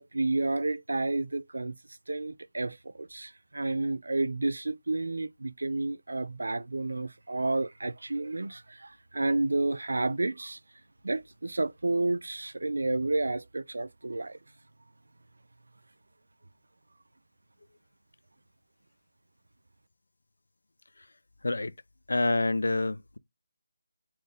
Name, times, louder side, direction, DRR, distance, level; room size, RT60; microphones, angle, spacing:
voice 1, 0.0-1.8 2.1-10.6 11.0-14.4, right 2 dB, 85° right, 0.4 m, -30 dB
voice 2, 21.4-21.7 22.1-23.2, left 2 dB, 90° left, 0.5 m, -27 dB
4.3 x 3.3 x 3.7 m
figure-of-eight pair, 180°, 0 cm